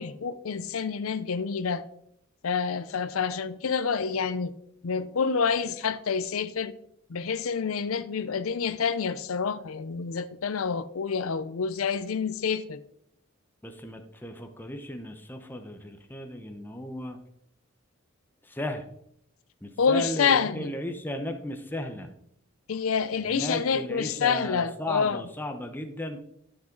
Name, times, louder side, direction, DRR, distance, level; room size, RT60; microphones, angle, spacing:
voice 1, 0.0-1.8 2.4-4.5 4.8-6.7 7.1-12.8 19.8-20.7 22.7-25.2, left 6 dB, 85° left, 0.5 m, -28 dB
voice 2, 13.6-17.2 18.4-18.9 19.6-22.1 23.2-26.2, left 1 dB, 10° left, 0.8 m, -35 dB
12.0 x 6.0 x 3.8 m
head